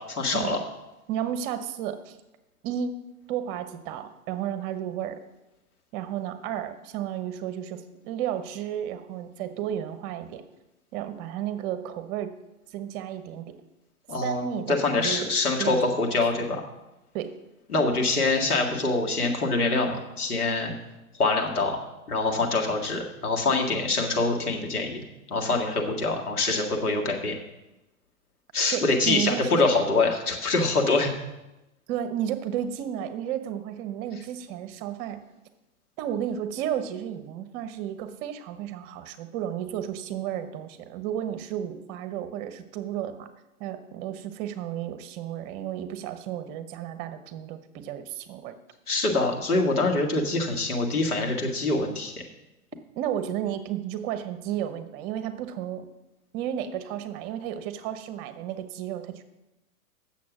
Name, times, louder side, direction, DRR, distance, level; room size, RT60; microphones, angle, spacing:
voice 1, 0.1-0.6 14.1-16.6 17.7-20.7 21.2-21.8 22.1-25.0 25.3-27.3 28.5-31.1 48.9-52.1, left 3 dB, 90° left, 0 dB, 2.0 m, -25 dB
voice 2, 1.1-2.2 2.6-2.9 3.3-5.2 5.9-10.4 10.9-12.3 12.7-13.4 14.2-15.3 15.6-16.1 17.1-17.3 28.7-29.6 31.9-35.2 36.0-43.3 43.6-48.5 53.0-55.9 56.3-59.2, right 10 dB, 40° right, 10 dB, 1.0 m, -32 dB
8.4 x 7.2 x 6.1 m, 0.97 s
hypercardioid pair, 105°, 43 cm